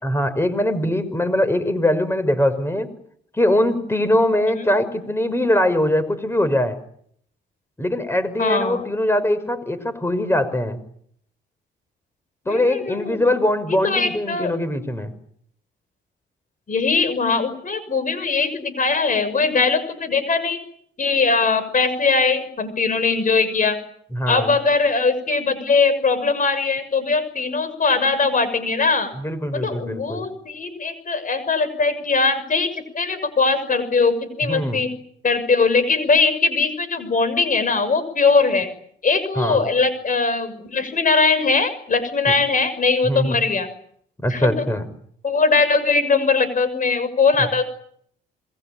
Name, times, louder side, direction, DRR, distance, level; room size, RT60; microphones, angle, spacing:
voice 1, 0.0-2.9 3.3-6.8 7.8-10.8 12.5-15.1 24.1-24.5 29.2-30.3 34.4-34.8 39.4-39.6 43.0-43.4 44.2-44.9, left 1 dB, 10° left, 12 dB, 5.7 m, -22 dB
voice 2, 8.4-8.8 12.5-13.2 13.8-14.5 16.7-20.6 21.0-23.8 24.3-29.1 29.5-32.7 32.9-34.9 35.2-38.7 39.0-43.7 44.3-44.7 45.2-47.7, left 4 dB, 40° left, 12 dB, 6.3 m, -20 dB
27.0 x 22.5 x 8.8 m, 0.66 s
cardioid pair, 90°, 20 cm